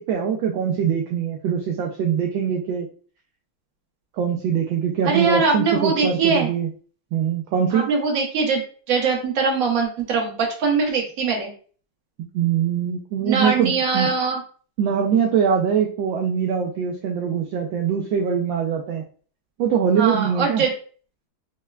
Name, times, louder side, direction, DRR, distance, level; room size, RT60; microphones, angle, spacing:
voice 1, 0.0-2.9 4.2-6.7 7.1-7.9 12.3-14.1 14.8-19.0 19.6-20.6, right 7 dB, 75° right, 1 dB, 1.1 m, -22 dB
voice 2, 5.0-6.5 7.7-11.5 13.2-14.4 20.0-20.7, right 5 dB, 50° right, 0 dB, 1.1 m, -22 dB
5.3 x 2.1 x 2.3 m, 0.42 s
omnidirectional pair, 2.3 m